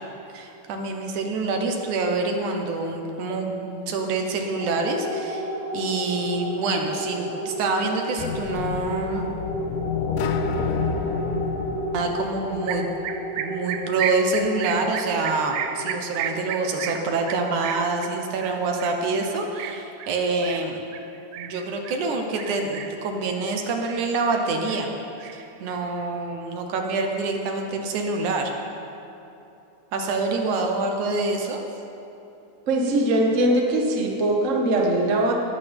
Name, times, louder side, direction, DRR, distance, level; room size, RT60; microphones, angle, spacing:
voice 1, 0.3-5.5 5.7-9.3 11.9-12.9 13.4-20.8 21.3-24.9 25.3-28.5 29.9-31.6, right 3 dB, 70° right, 3 dB, 2.3 m, -26 dB
sound 1, 4.5-19.3, equal, 65° left, 4.8 m, -33 dB
sound 2, 8.2-13.1, left 6 dB, 80° left, 2.4 m, -29 dB
sound 3, 12.7-22.0 22.4-23.1 23.5-24.4 24.7-26.0, right 8 dB, 90° right, 1.6 m, -33 dB
voice 2, 32.7-35.3, right 1 dB, 40° right, -1 dB, 1.1 m, -21 dB
19.0 x 14.5 x 3.5 m, 2.9 s
omnidirectional pair, 3.9 m